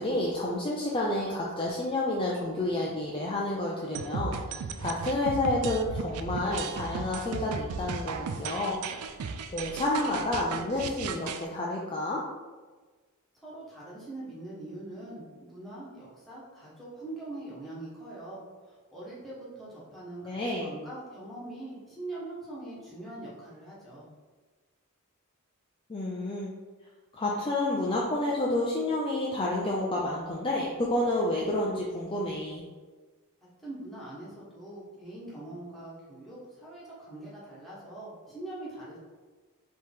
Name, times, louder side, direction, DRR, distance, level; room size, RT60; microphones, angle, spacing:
voice 1, 0.0-8.8 9.5-12.2 20.3-20.7 25.9-26.5 27.1-32.6, left 1 dB, 25° left, -3 dB, 0.4 m, -30 dB
sound 1, 3.9-11.4, right 5 dB, 80° right, 0.4 m, -35 dB
voice 2, 13.4-24.1 33.6-39.0, right 2 dB, ahead, -9 dB, 1.3 m, -43 dB
4.6 x 2.9 x 3.5 m, 1.3 s
head